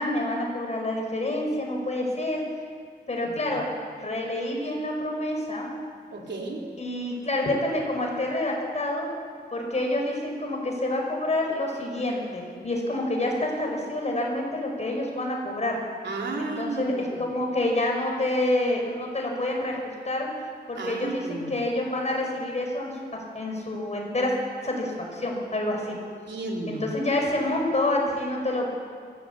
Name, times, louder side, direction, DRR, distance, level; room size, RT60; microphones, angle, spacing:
voice 1, 0.0-2.4 3.1-3.6 4.0-5.7 6.8-9.1 9.5-15.8 16.4-20.3 20.7-24.3 24.6-26.0 26.7-28.7, left 1 dB, 40° left, 0 dB, 5.4 m, -28 dB
voice 2, 6.1-6.6 16.0-17.2 20.8-21.5 26.3-26.9, right 2 dB, 85° right, -1 dB, 3.9 m, -32 dB
23.0 x 16.5 x 8.3 m, 2.1 s
wide cardioid pair, 120°, 18 cm